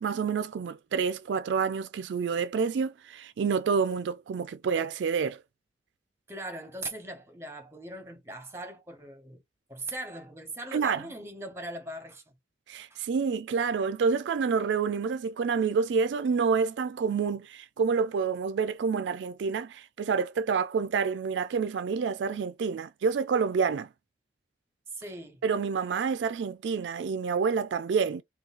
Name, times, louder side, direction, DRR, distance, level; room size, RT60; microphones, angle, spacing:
voice 1, 0.0-5.4 10.7-11.0 12.7-23.9 25.4-28.2, right 5 dB, 85° right, 0.4 m, -28 dB
voice 2, 6.3-9.4 9.7-12.2 12.9-13.0 24.9-25.4, right 2 dB, 15° right, 0.9 m, -40 dB
3.7 x 2.3 x 2.4 m
head